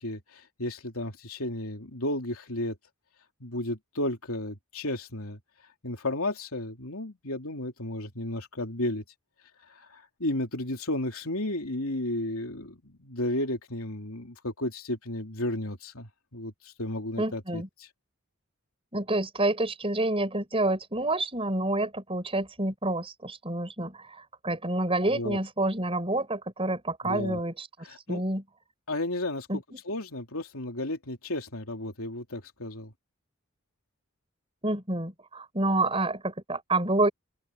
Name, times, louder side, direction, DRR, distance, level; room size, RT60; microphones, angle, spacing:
voice 1, 0.0-2.8 3.4-5.4 5.8-9.0 9.9-17.9 25.1-25.4 27.0-27.4 27.8-28.2 28.9-32.9, left 1 dB, 70° left, 3.3 m, -33 dB
voice 2, 17.2-17.7 18.9-28.4 29.5-29.8 34.6-37.1, right 2 dB, 25° right, 6.0 m, -28 dB
open air
head